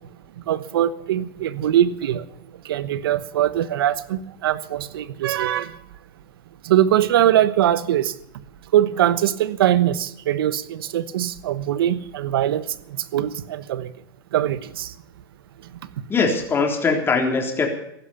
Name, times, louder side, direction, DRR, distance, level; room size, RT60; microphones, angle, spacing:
voice 1, 0.5-2.2 2.6-5.8 6.6-8.1 8.7-13.9 14.3-14.9, right 11 dB, 80° right, 16 dB, 1.1 m, -22 dB
voice 2, 16.1-17.7, left 4 dB, 20° left, 2 dB, 3.6 m, -21 dB
15.5 x 11.5 x 7.0 m, 0.77 s
supercardioid pair, 125°, 12 cm